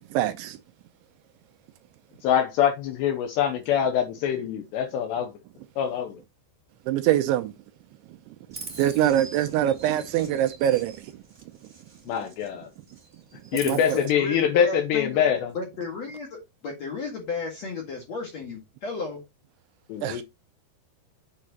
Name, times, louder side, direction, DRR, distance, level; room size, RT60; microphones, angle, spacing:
voice 1, 0.1-0.6 6.9-7.5 8.8-11.1 13.5-14.0 20.0-20.2, right 12 dB, 80° right, 2.8 m, -24 dB
voice 2, 2.2-5.3 5.8-6.2 12.1-12.7 13.5-15.5 19.9-20.2, left 9 dB, 80° left, 2.6 m, -24 dB
Chirp tweet, 8.5-12.5 12.8-14.0, right 3 dB, 25° right, 1.3 m, -44 dB
voice 3, 13.9-15.2 15.5-19.2, left 4 dB, 55° left, 2.0 m, -33 dB
8.6 x 7.4 x 2.9 m
omnidirectional pair, 5.7 m